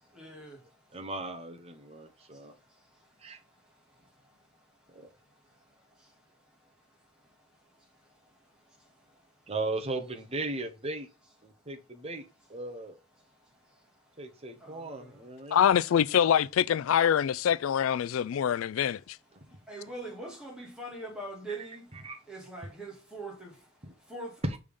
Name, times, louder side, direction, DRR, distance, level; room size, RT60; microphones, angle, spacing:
voice 1, 0.0-1.1 1.7-9.5 11.4-11.7 13.2-15.6 18.0-18.5 19.3-24.4, right 2 dB, 5° right, 2.5 m, -47 dB
voice 2, 0.9-2.5 3.2-3.4 4.9-5.1 9.5-11.1 11.4-12.2 12.5-13.0 14.2-15.6 19.4-19.5 22.0-22.2, right 2 dB, 30° right, 1.0 m, -37 dB
voice 3, 15.5-19.0, left 9 dB, 70° left, 0.3 m, -24 dB
6.7 x 3.5 x 5.2 m
head